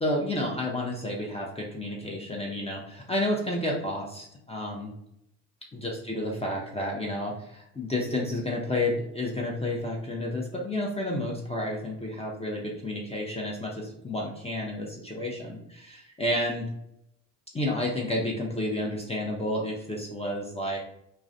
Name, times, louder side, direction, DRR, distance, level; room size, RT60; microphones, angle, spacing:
voice 1, 0.0-4.9 5.7-16.7 17.5-20.8, left 1 dB, 15° left, -2 dB, 0.5 m, -31 dB
2.3 x 2.1 x 2.6 m, 0.77 s
hypercardioid pair, 60°, 39 cm